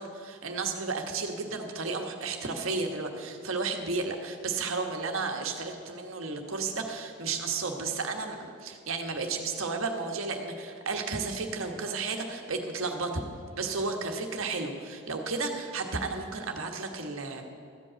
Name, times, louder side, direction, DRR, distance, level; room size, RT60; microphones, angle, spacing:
voice 1, 0.0-13.2 13.6-17.4, right 4 dB, 65° right, 3 dB, 1.3 m, -33 dB
13.5 x 5.4 x 8.6 m, 2.3 s
head